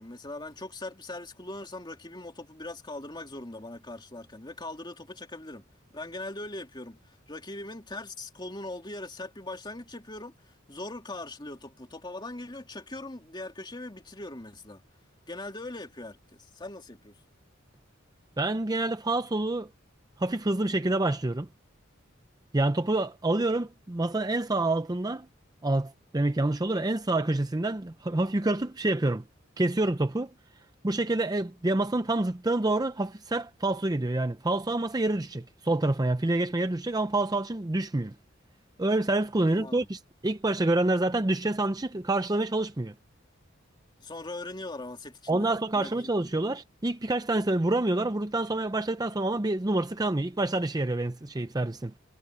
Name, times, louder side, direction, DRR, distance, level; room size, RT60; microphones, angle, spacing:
voice 1, 0.0-5.6 5.9-14.8 15.3-17.2 39.5-39.9 44.0-46.3, left 2 dB, 25° left, 2.6 m, -41 dB
voice 2, 18.4-19.7 20.2-21.5 22.5-25.3 25.6-29.2 29.6-30.3 30.8-38.1 38.8-42.9 45.3-51.9, right 2 dB, 20° right, 0.6 m, -27 dB
head